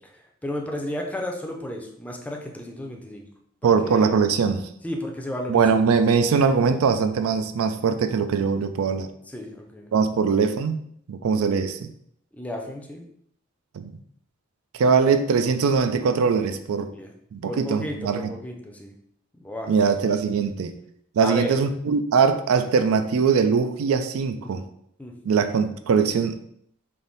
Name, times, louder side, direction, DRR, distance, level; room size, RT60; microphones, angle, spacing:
voice 1, 0.4-3.3 3.6-4.1 4.8-5.8 9.3-9.9 12.3-13.1 16.9-17.1 17.4-19.0 19.4-19.7 21.2-21.7 24.4-24.5 25.0-25.1, left 1 dB, 5° left, 2 dB, 0.4 m, -33 dB
voice 2, 3.6-4.7 5.5-9.1 9.9-10.8 11.1-11.8 13.7-13.9 14.7-16.9 17.3-18.3 19.7-20.8 21.2-24.6 25.3-26.4, right 5 dB, 90° right, 9 dB, 0.4 m, -21 dB
3.6 x 2.6 x 3.9 m, 0.69 s
head